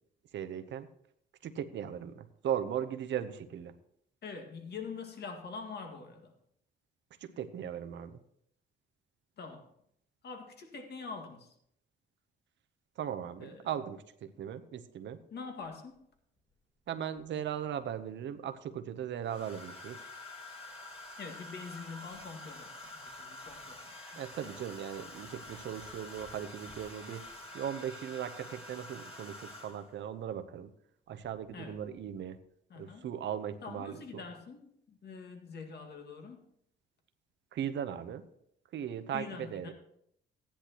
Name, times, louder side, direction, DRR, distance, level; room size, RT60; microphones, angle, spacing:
voice 1, 0.3-0.9 1.4-3.7 7.2-8.2 13.0-15.2 16.9-20.0 24.2-27.3 27.5-30.7 31.1-32.4 32.8-34.2 37.5-38.3 38.7-39.7, right 9 dB, 65° right, 9 dB, 0.8 m, -38 dB
voice 2, 4.2-6.3 9.4-9.7 10.2-11.6 13.4-13.7 15.3-16.0 21.2-24.2 31.5-31.8 32.7-33.1 33.6-36.4 39.1-39.7, left 5 dB, 55° left, 4 dB, 2.0 m, -45 dB
Domestic sounds home sounds, 17.6-17.8 19.2-30.0 31.2-31.5 31.8-32.1, left 1 dB, 30° left, 2.7 m, -48 dB
15.0 x 10.5 x 3.0 m, 0.72 s
cardioid pair, 90°, 20 cm